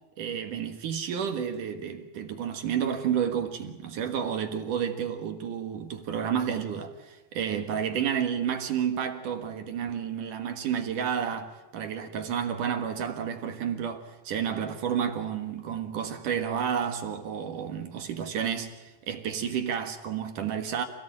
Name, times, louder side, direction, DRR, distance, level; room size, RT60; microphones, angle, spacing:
voice 1, 0.2-20.8, right 8 dB, 60° right, 2.5 m, -31 dB
28.0 x 17.0 x 9.0 m
omnidirectional pair, 5.2 m